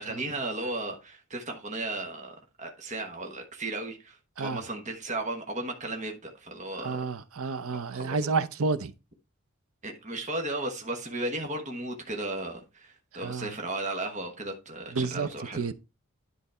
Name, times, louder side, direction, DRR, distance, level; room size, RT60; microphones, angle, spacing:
voice 1, 0.0-7.1 7.7-8.3 9.8-15.6, right 2 dB, 35° right, 1.2 m, -35 dB
voice 2, 6.8-8.9 13.1-13.5 14.9-15.3 15.5-15.7, right 4 dB, 75° right, 0.7 m, -30 dB
10.5 x 4.1 x 4.3 m
head